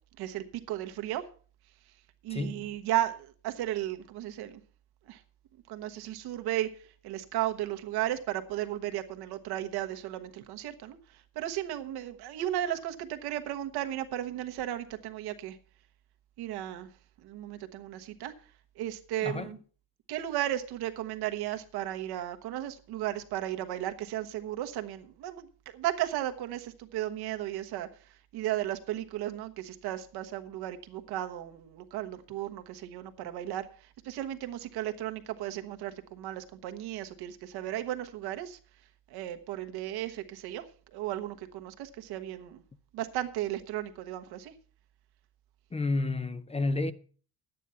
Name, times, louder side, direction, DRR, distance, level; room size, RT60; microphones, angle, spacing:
voice 1, 0.2-1.2 2.2-4.6 5.1-5.2 5.7-6.7 7.0-11.0 11.3-15.6 16.4-16.9 17.2-18.3 18.8-19.6 20.1-27.9 28.3-33.7 34.0-38.6 39.1-40.7 40.9-42.6 42.9-44.5, right 13 dB, 85° right, 1.2 m, -35 dB
voice 2, 2.3-2.7 19.2-19.5 45.7-46.9, left 2 dB, 15° left, 0.5 m, -31 dB
11.0 x 9.2 x 5.6 m
cardioid pair, 130°, 38 cm